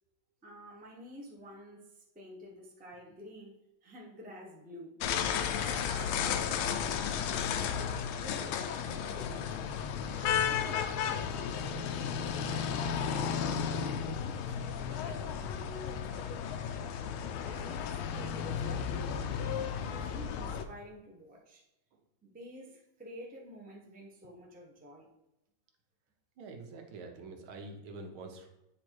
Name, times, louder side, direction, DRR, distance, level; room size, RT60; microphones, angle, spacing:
voice 1, 0.4-5.0 5.6-13.7 14.3-16.9 17.2-17.8 18.1-19.3 19.7-21.6 22.2-25.1, equal, 10° right, -2 dB, 0.6 m, -50 dB
sound 1, 5.0-20.6, left 7 dB, 85° left, 1.4 m, -33 dB
voice 2, 26.4-28.5, right 3 dB, 85° right, 3 dB, 1.8 m, -46 dB
8.4 x 3.0 x 4.5 m, 0.90 s
omnidirectional pair, 2.2 m